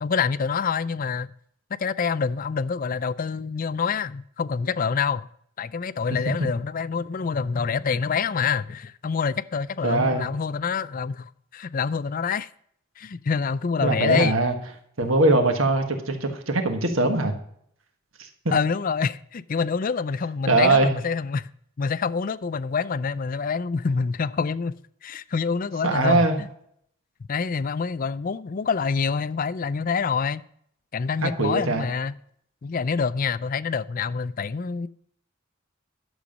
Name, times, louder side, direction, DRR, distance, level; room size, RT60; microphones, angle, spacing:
voice 1, 0.0-1.3 1.8-5.3 5.6-12.5 13.0-14.4 18.5-21.5 21.8-24.7 25.0-26.5 27.3-30.4 30.9-32.1 32.6-34.9, left 5 dB, 45° left, 0.4 m, -26 dB
voice 2, 9.8-10.3 13.8-14.5 15.0-17.3 20.5-20.9 25.8-26.4 31.2-31.9, right 2 dB, 90° right, 1.5 m, -21 dB
11.5 x 7.2 x 5.2 m
head